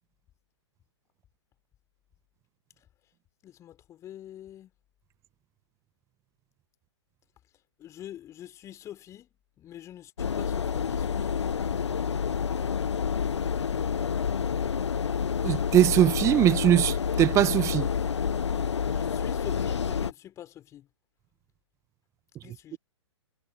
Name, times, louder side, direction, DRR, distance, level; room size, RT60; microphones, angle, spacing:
voice 1, 3.4-4.7 7.8-9.3 9.6-11.3 18.5-20.9 22.4-22.8, left 12 dB, 20° left, 3.5 m, -45 dB
sound 1, 10.2-20.1, left 7 dB, 65° left, 0.8 m, -28 dB
voice 2, 15.4-17.9, right 12 dB, 20° right, 1.1 m, -21 dB
figure-of-eight pair, 120°, 15 cm